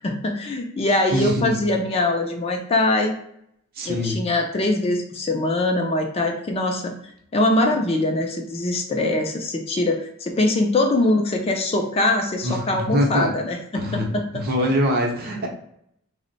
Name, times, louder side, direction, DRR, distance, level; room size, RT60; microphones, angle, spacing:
voice 1, 0.0-3.1 3.8-6.9 7.3-14.4, left 2 dB, 25° left, 2 dB, 0.3 m, -22 dB
voice 2, 1.1-1.5 3.8-4.2 12.4-13.3 13.7-14.1 14.3-15.5, equal, 45° right, 0 dB, 0.6 m, -23 dB
2.9 x 2.1 x 3.9 m, 0.73 s
head